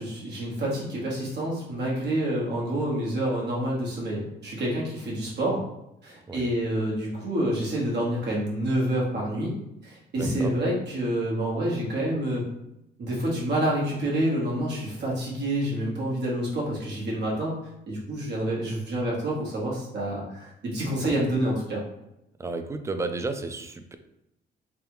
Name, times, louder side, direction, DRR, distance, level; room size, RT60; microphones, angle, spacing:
voice 1, 0.0-5.6 6.0-9.5 9.8-12.4 13.0-17.5 17.9-21.8, right 1 dB, 60° right, -4 dB, 1.3 m, -28 dB
voice 2, 10.2-10.5 22.4-24.0, right 3 dB, 15° right, 7 dB, 0.3 m, -32 dB
3.3 x 2.3 x 3.1 m, 0.85 s
cardioid pair, 90°, 20 cm